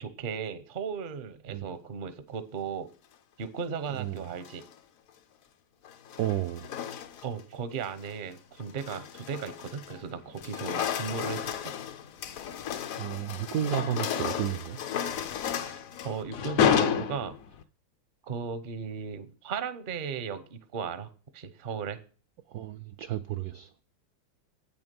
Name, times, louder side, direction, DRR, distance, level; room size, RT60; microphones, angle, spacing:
voice 1, 0.0-2.9 3.4-4.6 7.2-11.7 15.6-17.3 18.2-21.1 21.3-22.0, right 6 dB, 55° right, 0.5 m, -36 dB
voice 2, 3.9-4.2 6.2-6.7 13.0-14.8 22.5-23.8, right 11 dB, 80° right, 0.8 m, -32 dB
sound 1, 4.2-4.7 5.8-7.4 7.8-8.1 8.6-10.0 10.3-17.6, left 8 dB, 65° left, 0.8 m, -32 dB
8.7 x 7.0 x 5.2 m
omnidirectional pair, 2.2 m